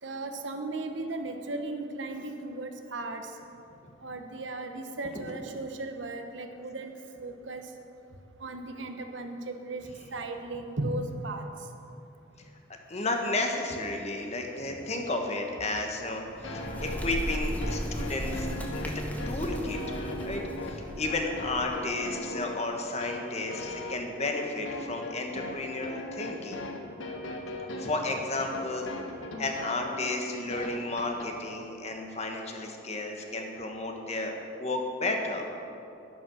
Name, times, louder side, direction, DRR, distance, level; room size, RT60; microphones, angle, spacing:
voice 1, 0.0-3.2 4.0-6.9 7.2-7.6 8.4-9.8 10.1-11.4, right 2 dB, 70° right, 5 dB, 1.1 m, -36 dB
voice 2, 12.9-18.5 18.7-18.9 19.2-19.8 20.2-26.6 27.8-28.9 29.4-34.3 34.6-35.4, left 2 dB, 35° left, 2 dB, 1.4 m, -32 dB
Bird, 16.1-21.9, equal, 10° left, 1.2 m, -36 dB
sound 1, 16.4-31.3, left 1 dB, 85° left, 1.5 m, -39 dB
11.5 x 11.0 x 6.4 m, 2.8 s
head